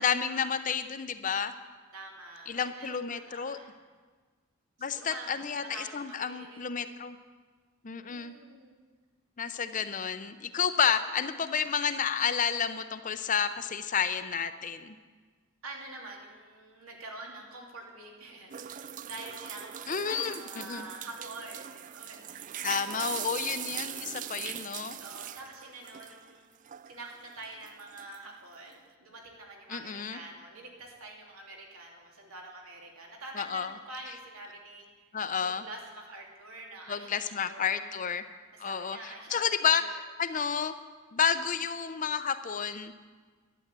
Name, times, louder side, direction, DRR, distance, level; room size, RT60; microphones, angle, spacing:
voice 1, 0.0-1.5 2.5-3.6 4.8-7.2 7.8-8.3 9.4-14.9 19.9-20.9 22.6-25.0 29.7-30.2 33.4-33.7 35.1-35.6 36.9-38.2 38.6-39.8 40.2-40.7 41.1-43.1, left 7 dB, 40° left, 11 dB, 0.6 m, -30 dB
voice 2, 1.9-3.0 3.3-3.7 4.8-5.3 5.6-6.6 7.9-8.8 15.6-19.7 20.0-23.2 25.0-26.5 26.8-34.9 35.4-37.9 38.5-40.0, right 2 dB, 85° right, 0 dB, 2.9 m, -46 dB
sound 1, 18.5-26.3 26.7-28.3, right 10 dB, 40° right, 0.3 m, -41 dB
12.0 x 10.5 x 8.2 m, 1.4 s
head